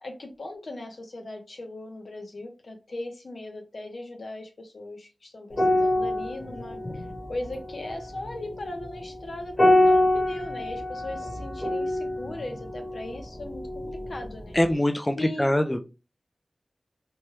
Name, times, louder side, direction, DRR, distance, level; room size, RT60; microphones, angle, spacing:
voice 1, 0.0-7.0 7.3-14.6 15.1-15.5, left 2 dB, 70° left, 4 dB, 0.7 m, -39 dB
sound 1, 5.5-14.2 14.5-14.8, left 1 dB, 50° left, 1.3 m, -26 dB
voice 2, 14.5-15.8, left 1 dB, 15° left, 6 dB, 0.4 m, -23 dB
3.0 x 2.2 x 3.0 m, 0.29 s
wide cardioid pair, 55°, 0 cm